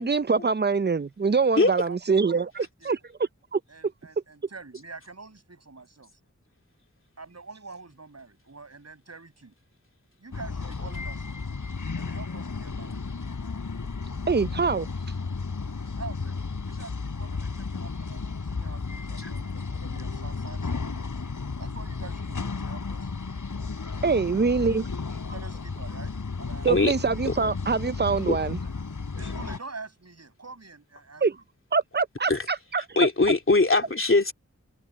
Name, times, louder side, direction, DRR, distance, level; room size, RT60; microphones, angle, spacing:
voice 1, 0.0-3.0 3.5-3.6 14.3-14.9 24.0-24.8 26.6-28.6 31.2-31.4 31.7-32.9, right 4 dB, 35° right, 0.5 m, -24 dB
voice 2, 1.5-3.0 3.7-6.2 7.2-9.5 10.2-11.4 11.9-13.1 16.0-21.1 21.6-23.1 24.0-24.2 24.6-24.7 25.3-26.7 29.2-31.2, right 3 dB, 55° right, 7.4 m, -45 dB
sound 1, 10.3-29.6, left 4 dB, 85° left, 5.2 m, -33 dB
voice 3, 33.0-34.3, left 3 dB, 45° left, 2.9 m, -21 dB
wide cardioid pair, 60°, 30 cm